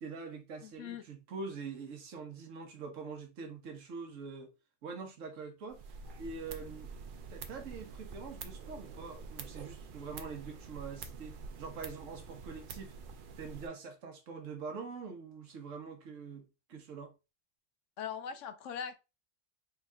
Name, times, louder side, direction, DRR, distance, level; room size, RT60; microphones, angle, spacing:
voice 1, 0.0-4.5 4.8-5.8 6.2-7.0 7.3-13.0 13.4-17.1, right 5 dB, 75° right, 1.3 m, -44 dB
voice 2, 0.6-1.0 18.0-19.0, left 7 dB, 70° left, 0.9 m, -40 dB
sound 1, 5.7-13.7, right 4 dB, 55° right, 0.6 m, -47 dB
3.9 x 3.5 x 2.3 m
omnidirectional pair, 1.4 m